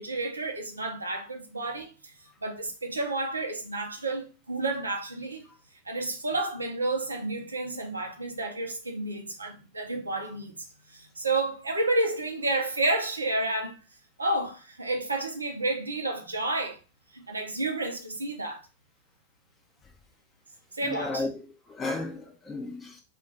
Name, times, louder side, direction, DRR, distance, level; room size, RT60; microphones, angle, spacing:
voice 1, 0.0-1.9 2.4-5.5 5.9-10.6 10.9-13.8 14.2-16.8 17.1-18.6 20.7-21.2, right 2 dB, 80° right, 0.5 m, -30 dB
voice 2, 20.8-23.0, left 3 dB, 15° left, 0.6 m, -34 dB
2.4 x 2.3 x 3.3 m
figure-of-eight pair, 90°, 0 cm